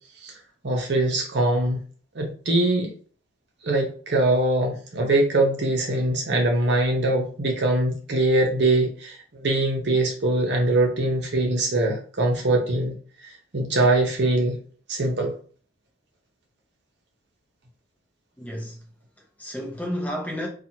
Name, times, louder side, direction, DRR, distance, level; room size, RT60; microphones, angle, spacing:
voice 1, 0.6-1.8 2.1-2.9 3.6-12.9 13.2-14.6 14.9-15.3, right 2 dB, 55° right, 0.8 m, -22 dB
voice 2, 18.4-18.9 19.2-20.5, equal, 5° left, 0.7 m, -32 dB
2.9 x 2.4 x 2.8 m
head